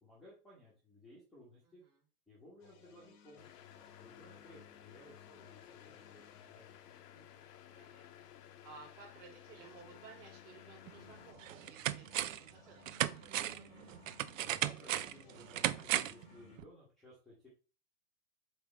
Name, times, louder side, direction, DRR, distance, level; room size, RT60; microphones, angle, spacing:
voice 1, 0.0-1.8 2.3-6.9 14.4-17.5, left 1 dB, ahead, -10 dB, 1.2 m, -59 dB
voice 2, 1.6-2.0 7.1-13.5, right 5 dB, 35° right, -4 dB, 3.4 m, -58 dB
sound 1, 2.6-7.7 9.3-16.6, left 7 dB, 30° left, 1.1 m, -62 dB
sound 2, 3.4-11.3, left 11 dB, 80° left, 0.9 m, -56 dB
sound 3, 10.9-11.0 11.4-12.5 12.9-16.3 16.6-16.7, right 12 dB, 55° right, 0.5 m, -36 dB
7.5 x 3.5 x 4.3 m, 0.36 s
supercardioid pair, 170°, 47 cm